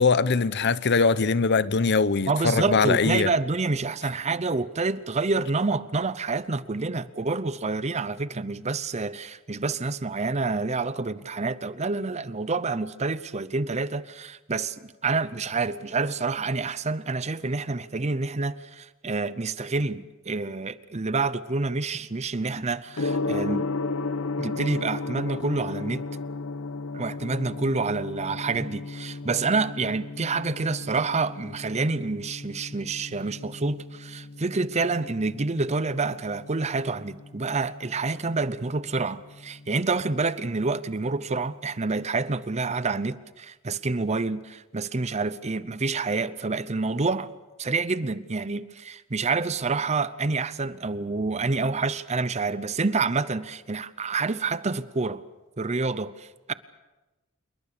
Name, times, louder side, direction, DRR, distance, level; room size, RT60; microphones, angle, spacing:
voice 1, 0.0-3.3, left 4 dB, 50° left, 0.8 m, -22 dB
voice 2, 2.3-23.7 24.4-26.0 26.9-47.3 47.6-55.2 55.6-56.5, right 3 dB, 30° right, 0.7 m, -28 dB
Gong, 22.9-42.0, left 3 dB, 80° left, 1.0 m, -35 dB
27.5 x 22.0 x 6.8 m
head